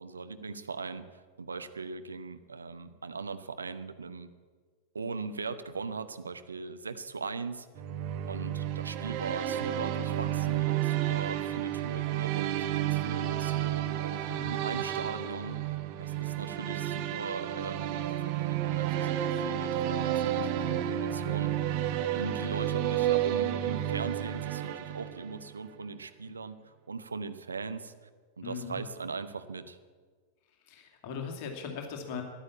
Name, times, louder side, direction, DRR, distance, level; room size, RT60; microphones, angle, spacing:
voice 1, 0.0-4.3 4.9-7.7 8.3-21.5 22.1-27.9 28.4-29.8, right 4 dB, 75° right, 10 dB, 0.9 m, -39 dB
sound 1, 7.7-25.5, right 11 dB, 45° right, 1.0 m, -31 dB
voice 2, 14.2-14.8 28.4-28.8 30.7-32.2, left 6 dB, 45° left, 3 dB, 2.4 m, -39 dB
14.0 x 10.5 x 8.5 m, 1.5 s
figure-of-eight pair, 90°, 0 cm